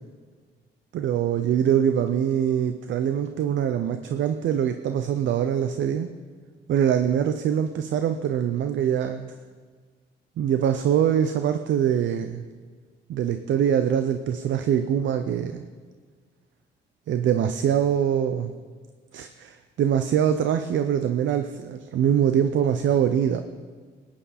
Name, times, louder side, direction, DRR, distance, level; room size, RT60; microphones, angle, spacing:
voice 1, 0.9-6.1 6.7-9.3 10.4-12.4 13.1-15.6 17.1-18.5 19.1-23.4, right 9 dB, 70° right, 8 dB, 0.7 m, -23 dB
17.5 x 9.9 x 4.3 m, 1.6 s
cardioid pair, 90°, 20 cm